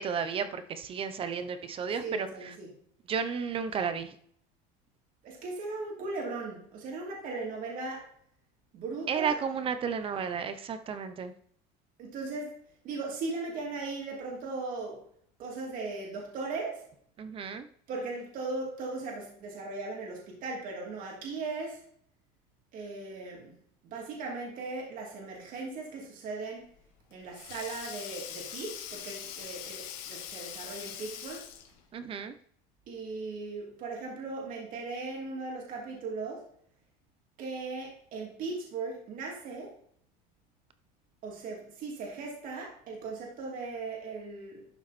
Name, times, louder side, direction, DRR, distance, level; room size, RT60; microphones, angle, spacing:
voice 1, 0.0-2.3 3.1-4.1 9.1-11.3 17.2-17.7 31.9-32.3, right 6 dB, 30° right, 11 dB, 0.8 m, -33 dB
voice 2, 1.9-2.7 5.2-8.0 8.7-9.4 12.0-12.6 12.8-15.0 15.4-16.8 17.9-21.8 22.7-23.5 23.8-26.7 27.1-31.5 32.9-36.4 37.4-39.7 41.2-44.7, right 3 dB, 45° right, -1 dB, 2.8 m, -38 dB
Sink (filling or washing), 26.7-31.8, left 10 dB, 80° left, 1.6 m, -42 dB
12.0 x 5.7 x 4.3 m, 0.62 s
cardioid pair, 155°, 19 cm